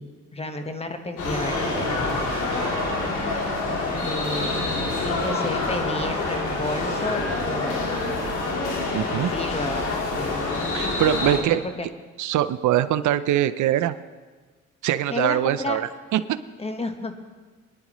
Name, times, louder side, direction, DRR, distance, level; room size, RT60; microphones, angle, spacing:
voice 1, 0.0-2.4 4.0-4.6 5.0-8.2 9.1-10.7 11.2-11.5 11.8-11.9 15.1-15.8 16.6-17.1, left 2 dB, 20° left, 6 dB, 1.2 m, -32 dB
sound 1, 1.2-11.4, left 3 dB, 85° left, 3.1 m, -27 dB
sound 2, 1.3-7.6, right 2 dB, 15° right, 5.1 m, -37 dB
voice 2, 8.9-9.3 10.7-11.6 12.2-13.9 14.8-16.4, right 12 dB, 75° right, 13 dB, 0.6 m, -23 dB
22.5 x 10.5 x 3.1 m, 1.4 s
cardioid pair, 90°, 30 cm